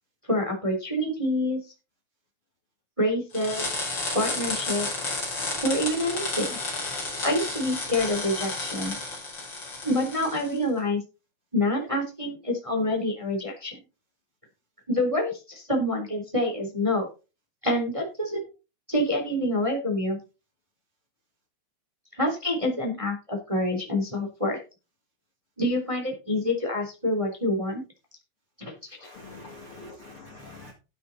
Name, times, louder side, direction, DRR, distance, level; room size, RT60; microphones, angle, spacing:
voice 1, 0.3-1.6 3.0-3.8 4.1-5.0 5.6-6.6 7.2-8.9 9.8-11.0 11.5-13.8 14.9-17.1 17.6-18.4 18.9-20.2 22.1-24.6 25.6-27.8 28.6-28.7, left 1 dB, 10° right, 2 dB, 2.8 m, -27 dB
sound 1, 3.3-10.6, left 2 dB, 25° left, 5.6 m, -32 dB
voice 2, 29.0-30.7, left 2 dB, 40° left, 0 dB, 2.3 m, -44 dB
12.5 x 8.7 x 4.2 m, 0.31 s
omnidirectional pair, 5.3 m